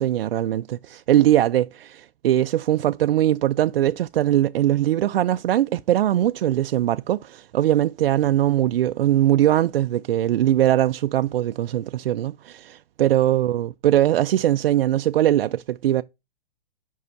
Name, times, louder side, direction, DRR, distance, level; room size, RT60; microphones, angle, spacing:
voice 1, 0.0-16.0, right 12 dB, 70° right, 0.5 m, -21 dB
5.5 x 5.5 x 6.3 m
hypercardioid pair, 145°, 30 cm